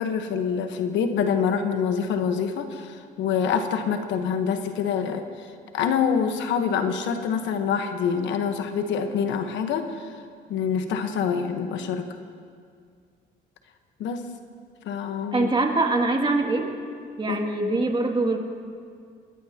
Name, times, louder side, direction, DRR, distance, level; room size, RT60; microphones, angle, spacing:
voice 1, 0.0-5.2 5.7-10.1 10.5-12.1 14.0-14.2 14.8-15.5 17.3-17.4, left 6 dB, 80° left, 7 dB, 1.2 m, -26 dB
voice 2, 15.3-16.7 17.2-18.4, right 2 dB, 25° right, 2 dB, 2.3 m, -23 dB
21.5 x 18.0 x 2.9 m, 2.2 s
supercardioid pair, 70°, 19 cm